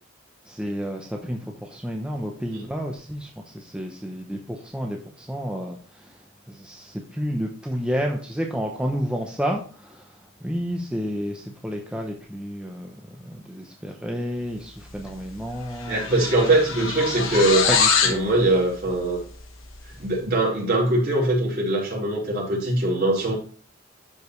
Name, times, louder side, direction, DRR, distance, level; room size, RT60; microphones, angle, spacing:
voice 1, 0.5-6.2 6.5-10.1 10.4-16.0 17.7-18.2, equal, 5° right, 1 dB, 0.8 m, -30 dB
sound 1, 15.1-15.3 15.5-18.2, left 5 dB, 80° left, 1.4 m, -24 dB
voice 2, 15.9-17.7 18.0-19.2 20.0-23.3, right 2 dB, 50° right, -4 dB, 4.2 m, -22 dB
12.0 x 5.2 x 3.2 m, 0.40 s
head